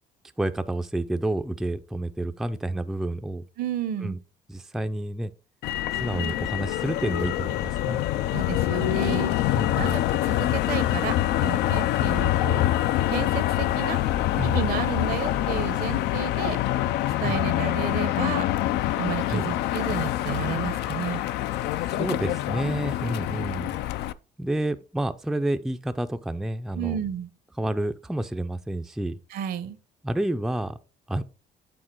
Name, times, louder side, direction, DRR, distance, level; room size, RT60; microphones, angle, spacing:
voice 1, 0.4-3.4 4.0-4.2 4.5-5.3 6.0-8.0 9.5-10.0 14.4-14.6 17.2-17.4 19.2-19.5 21.9-23.7 24.4-27.0 27.6-29.2 30.0-30.8 31.1-31.2, right 1 dB, ahead, 0.4 m, -29 dB
voice 2, 3.6-4.2 8.3-9.3 9.7-11.1 11.4-12.7 13.1-14.0 14.4-16.6 17.2-18.5 19.0-21.2 26.8-27.3 29.3-29.8, right 10 dB, 65° right, 0.8 m, -32 dB
Motor vehicle (road), 5.6-24.1, left 13 dB, 80° left, 0.4 m, -25 dB
8.7 x 3.7 x 4.4 m
cardioid pair, 110°, 17 cm